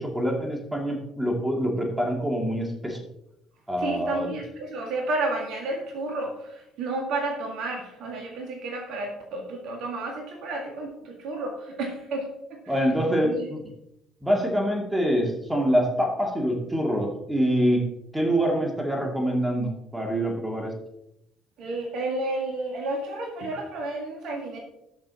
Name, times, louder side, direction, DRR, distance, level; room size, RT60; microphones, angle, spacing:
voice 1, 0.0-3.0 3.7-4.3 12.7-13.6 14.2-17.8 18.1-20.7, equal, 10° right, 1 dB, 2.4 m, -25 dB
voice 2, 3.8-13.5 21.6-24.6, right 2 dB, 55° right, 2 dB, 1.9 m, -31 dB
19.0 x 6.3 x 2.9 m, 0.85 s
figure-of-eight pair, 50°, 0 cm